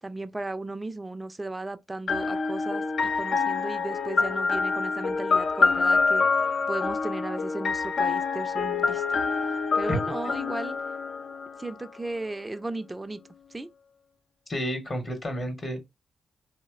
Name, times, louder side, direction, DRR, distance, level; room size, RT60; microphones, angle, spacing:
voice 1, 0.0-2.8 3.1-6.2 6.7-9.2 9.8-10.8 11.6-13.2 13.5-13.7, right 2 dB, 20° right, 0.3 m, -35 dB
sound 1, 2.1-11.9, left 4 dB, 65° left, 0.3 m, -26 dB
voice 2, 14.5-15.8, equal, 40° left, 0.8 m, -30 dB
2.7 x 2.0 x 2.3 m
hypercardioid pair, 40°, 0 cm